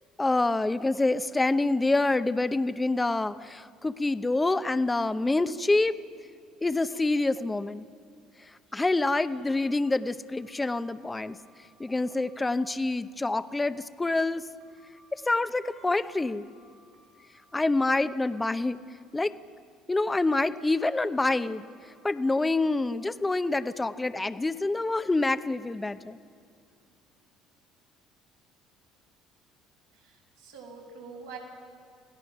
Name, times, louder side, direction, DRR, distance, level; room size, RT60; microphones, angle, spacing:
voice 1, 0.2-6.0 6.6-7.9 8.7-11.4 11.8-14.5 15.3-16.5 17.5-18.8 19.1-19.3 19.9-21.7 22.0-26.2, left 2 dB, 15° left, 12 dB, 0.7 m, -26 dB
sound 1, 9.3-9.8 10.4-11.7 12.1-12.5 14.6-15.1 15.8-17.4 17.8-18.3 20.3-20.7 21.2-22.8 23.2-23.7, equal, 75° right, 3.2 m, -62 dB
voice 2, 29.9-31.4, right 5 dB, 90° right, -3 dB, 6.0 m, -45 dB
28.5 x 17.0 x 6.0 m, 2.4 s
hypercardioid pair, 70°, 0 cm